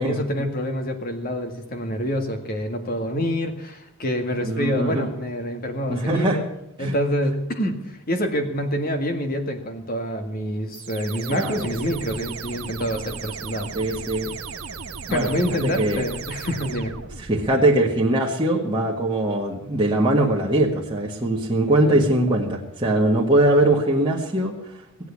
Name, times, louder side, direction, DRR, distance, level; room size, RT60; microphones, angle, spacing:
voice 1, 0.0-6.5 6.8-13.7 15.1-16.9 21.9-22.0, equal, 45° left, 6 dB, 1.9 m, -27 dB
voice 2, 4.4-5.1 5.9-6.4 6.8-6.9 11.3-11.7 13.7-14.3 15.1-16.0 17.2-24.6, right 1 dB, 20° right, -4 dB, 1.7 m, -21 dB
sound 1, 10.7-17.5, right 5 dB, 90° right, 1.3 m, -36 dB
17.5 x 8.2 x 8.5 m, 0.81 s
head